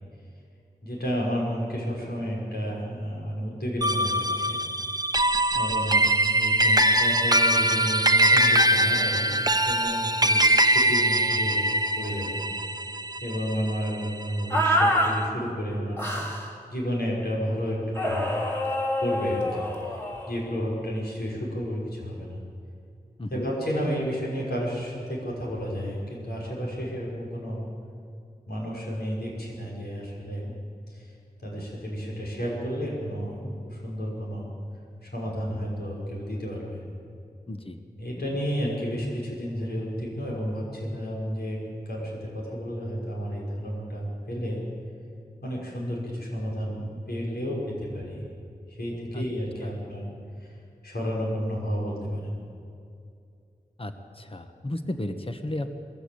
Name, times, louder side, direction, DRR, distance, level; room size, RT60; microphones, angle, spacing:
voice 1, 0.8-4.6 5.6-11.6 12.0-12.4 13.2-16.3 16.7-18.3 19.0-19.6 20.3-22.4 23.3-27.7 28.5-30.6 30.9-31.1 31.4-34.5 35.0-36.8 38.0-44.7 45.4-48.2 48.7-50.0 50.4-50.5 50.8-52.4, equal, 85° left, -4 dB, 6.0 m, -31 dB
sound 1, 3.8-14.4, right 1 dB, 25° right, 0.9 m, -22 dB
sound 2, 14.5-15.1 16.0-16.5 18.0-20.3, equal, 15° left, 4.0 m, -26 dB
voice 2, 23.2-23.5 37.5-37.8 49.1-49.2 49.6-49.7 53.8-55.7, left 1 dB, 35° left, 7 dB, 1.5 m, -34 dB
22.0 x 14.5 x 8.8 m, 2.4 s
wide cardioid pair, 60°, 16 cm